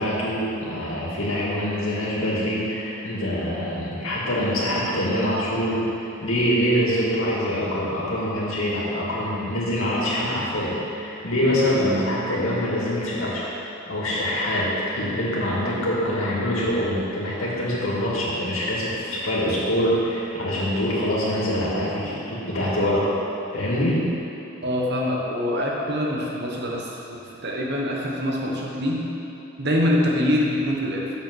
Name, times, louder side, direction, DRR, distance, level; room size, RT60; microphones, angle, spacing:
voice 1, 0.0-13.5 13.9-23.1 23.5-24.0, equal, 85° left, -6 dB, 2.0 m, -24 dB
voice 2, 24.6-29.0 29.6-31.1, left 1 dB, 55° right, -2 dB, 1.2 m, -24 dB
6.5 x 5.9 x 6.3 m, 3.0 s
head